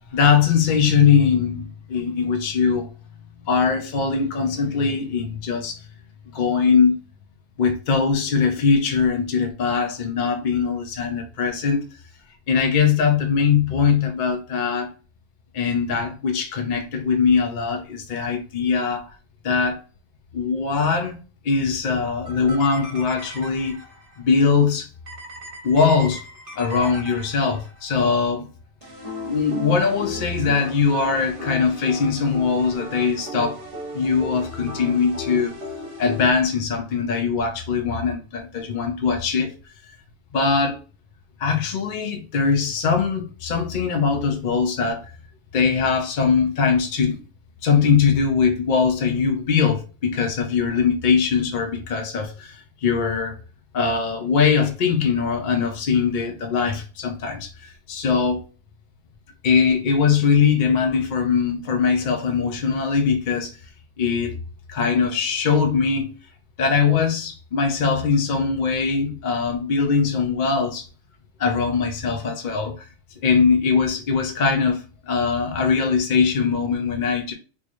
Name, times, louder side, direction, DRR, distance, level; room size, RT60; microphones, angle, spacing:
voice 1, 0.1-2.9 3.5-5.8 6.3-6.9 7.6-11.8 12.5-14.9 15.5-19.1 19.4-19.8 20.3-21.2 21.4-23.8 24.2-24.9 25.6-26.2 26.6-28.5 29.2-33.6 33.9-35.6 36.0-39.5 40.3-40.8 41.4-45.0 45.5-47.2 47.6-53.4 53.7-58.4 59.4-63.6 64.0-64.4 64.7-66.1 66.6-70.9 71.4-72.9 73.2-77.3, left 5 dB, 55° left, 0.5 m, -21 dB
sound 1, 22.3-24.2 25.1-27.9 28.8-36.3, left 1 dB, 45° right, 1.2 m, -36 dB
3.6 x 3.1 x 2.5 m
omnidirectional pair, 1.3 m